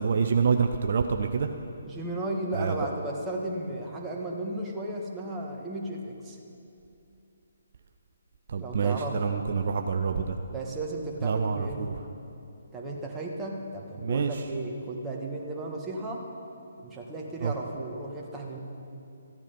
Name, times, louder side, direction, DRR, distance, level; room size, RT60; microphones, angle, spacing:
voice 1, 0.0-1.5 2.5-2.8 8.5-10.4 11.2-12.0 14.0-14.4 17.4-17.5, right 5 dB, 55° right, 5 dB, 0.6 m, -27 dB
voice 2, 1.8-6.4 8.6-9.2 10.5-11.9 12.7-16.2 16.8-18.6, right 2 dB, 15° right, -1 dB, 1.5 m, -34 dB
14.5 x 10.5 x 5.2 m, 2.7 s
figure-of-eight pair, 140°, 0 cm